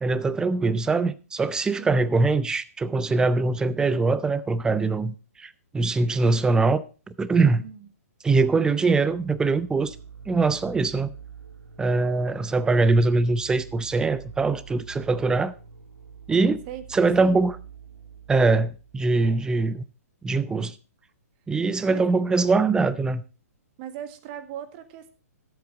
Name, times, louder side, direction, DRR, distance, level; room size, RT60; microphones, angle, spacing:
voice 1, 0.0-7.7 8.2-10.0 10.3-11.1 11.8-15.5 16.3-16.6 16.9-17.6 18.3-19.8 20.2-20.8 21.5-23.2, right 3 dB, 10° right, 0.6 m, -22 dB
voice 2, 1.8-2.1 7.6-7.9 16.7-16.8 17.2-17.4 21.9-22.0 23.8-25.1, right 10 dB, 40° right, 1.6 m, -38 dB
sound 1, 9.0-19.5, right 6 dB, 80° right, 2.1 m, -46 dB
13.0 x 8.0 x 3.8 m
figure-of-eight pair, 125°, 8 cm